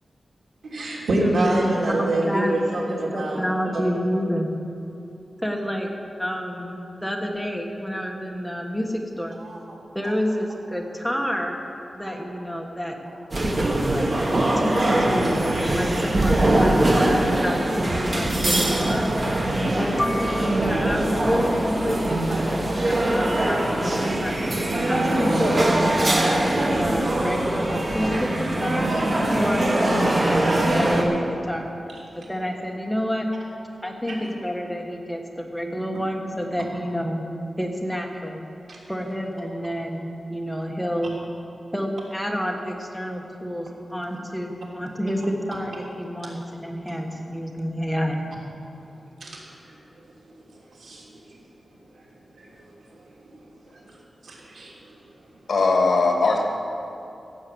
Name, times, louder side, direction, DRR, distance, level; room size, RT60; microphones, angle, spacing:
voice 1, 0.6-3.4 3.7-3.8 9.4-9.6 13.1-13.2 15.5-15.6 17.0-17.1 20.7-20.8 21.5-21.6 22.1-22.4 26.5-26.6 28.8-29.1 34.1-34.2 38.7-38.8 49.2-49.4 50.3-50.4 50.8-51.1 52.4-52.7 54.2-54.7, right 2 dB, 90° right, -3 dB, 3.1 m, -27 dB
voice 2, 1.2-2.6 2.9-4.5 5.4-5.9 6.2-9.3 9.9-11.6 11.9-13.0 13.3-19.1 19.8-24.4 24.9-28.9 29.4-31.7 32.1-33.3 33.8-37.2 37.6-38.4 38.9-41.2 41.7-48.2, equal, ahead, 1 dB, 1.4 m, -29 dB
sound 1, 13.3-31.0, right 1 dB, 35° right, 1.6 m, -22 dB
voice 3, 55.5-56.4, left 3 dB, 65° left, 1 dB, 2.1 m, -19 dB
15.5 x 7.5 x 7.9 m, 2.8 s
wide cardioid pair, 150°, 0 cm